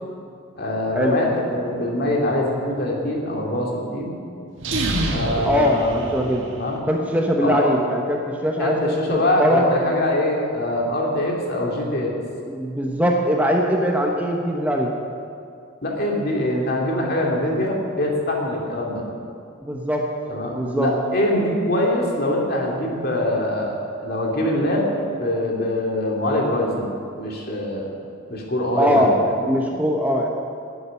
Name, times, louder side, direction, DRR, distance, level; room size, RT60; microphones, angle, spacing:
voice 1, 0.6-4.1 5.1-6.0 6.5-6.8 7.4-7.6 8.6-12.1 15.8-19.0 20.3-24.9 25.2-27.9 28.3-29.5, left 1 dB, 50° left, -1 dB, 2.5 m, -23 dB
sound 1, 4.6-6.7, right 1 dB, 70° right, 1.7 m, -26 dB
voice 2, 5.3-6.5 6.9-9.7 12.5-14.9 19.6-20.1 20.5-20.9 28.8-30.3, equal, 10° right, 0 dB, 0.9 m, -21 dB
11.5 x 8.8 x 9.6 m, 2.5 s
head